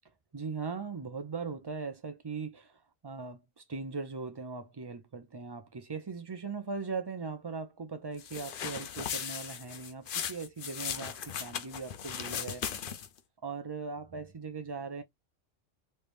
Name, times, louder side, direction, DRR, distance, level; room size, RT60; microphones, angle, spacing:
voice 1, 0.3-12.6 13.4-15.0, right 4 dB, 30° right, 0.4 m, -39 dB
sound 1, 8.2-13.2, left 8 dB, 55° left, 0.6 m, -37 dB
3.3 x 3.2 x 2.6 m
omnidirectional pair, 1.3 m